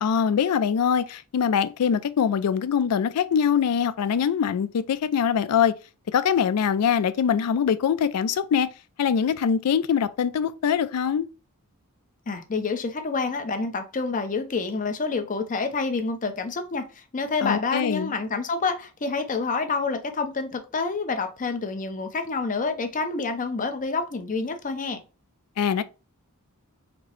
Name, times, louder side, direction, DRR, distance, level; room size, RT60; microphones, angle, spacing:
voice 1, 0.0-5.7 6.1-8.7 9.0-11.3 17.4-18.1 25.6-25.8, left 7 dB, 85° left, 0.4 m, -23 dB
voice 2, 12.3-25.0, left 4 dB, 35° left, 0.6 m, -28 dB
4.4 x 2.0 x 3.8 m
head